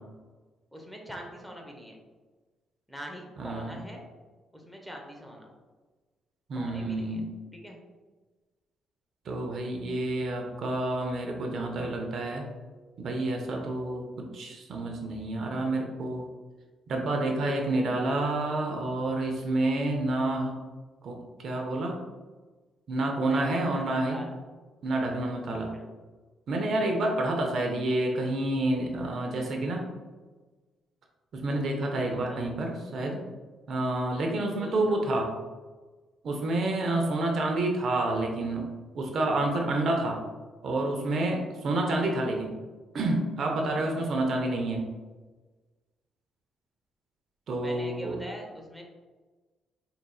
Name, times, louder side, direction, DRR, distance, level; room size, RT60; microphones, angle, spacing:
voice 1, 0.7-2.0 2.9-4.0 4.5-5.5 6.5-7.2 7.5-7.8 11.8-11.9 23.3-24.4 25.7-25.9 32.0-32.4 34.6-35.2 47.6-48.8, equal, ahead, 0 dB, 0.8 m, -42 dB
voice 2, 3.4-3.8 6.5-7.3 9.3-12.4 13.0-16.3 16.9-20.5 21.0-22.0 22.9-24.2 24.8-25.7 26.5-29.8 31.3-33.2 33.7-35.3 36.2-38.7 38.9-40.2 40.6-42.5 42.9-44.9 47.5-48.2, right 2 dB, 60° right, 2 dB, 0.6 m, -29 dB
4.6 x 2.8 x 2.2 m, 1.3 s
cardioid pair, 90°, 0 cm